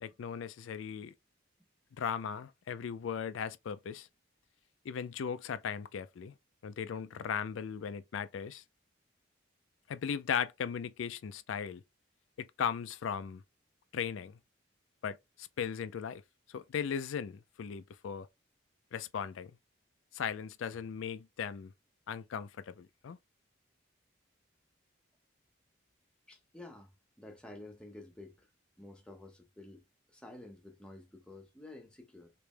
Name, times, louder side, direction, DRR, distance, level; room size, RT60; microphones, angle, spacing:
voice 1, 0.0-1.1 2.0-4.1 4.9-6.3 6.6-8.6 9.9-11.8 12.4-13.4 13.9-14.4 15.0-16.2 16.5-18.3 18.9-19.5 20.1-21.7 22.1-23.2, left 7 dB, 80° left, 0.4 m, -37 dB
voice 2, 26.3-26.9 27.2-28.5 28.8-32.3, left 2 dB, 5° left, 0.7 m, -51 dB
3.3 x 3.0 x 3.2 m
head